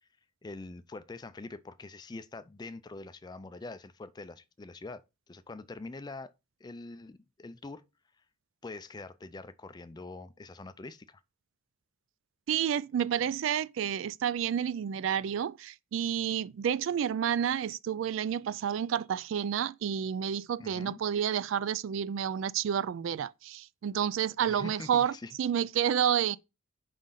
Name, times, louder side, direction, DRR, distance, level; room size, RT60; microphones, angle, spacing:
voice 1, 0.4-6.3 6.6-7.8 8.6-11.2 20.6-21.0 24.4-25.4, left 3 dB, 20° left, 0.3 m, -44 dB
voice 2, 12.5-26.4, right 9 dB, 70° right, 0.3 m, -30 dB
4.9 x 3.8 x 5.6 m
head